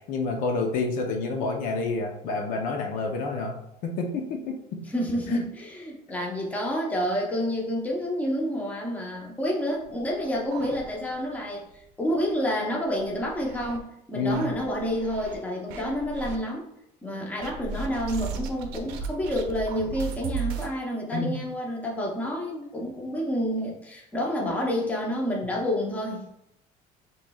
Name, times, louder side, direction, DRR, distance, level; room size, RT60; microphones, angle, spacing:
voice 1, 0.0-3.6 3.8-4.8 5.3-5.4 14.1-14.5 21.1-21.4, left 3 dB, 60° left, 2 dB, 0.7 m, -29 dB
voice 2, 4.9-16.7 17.0-26.3, equal, 10° left, -2 dB, 0.8 m, -29 dB
sound 1, 9.8-11.4 11.7-11.8 12.2-12.3 12.9-13.8 14.3-15.3 15.7-16.4 17.4-20.7, right 6 dB, 85° right, 0.7 m, -36 dB
6.8 x 3.2 x 2.3 m, 0.81 s
cardioid pair, 155°, 15 cm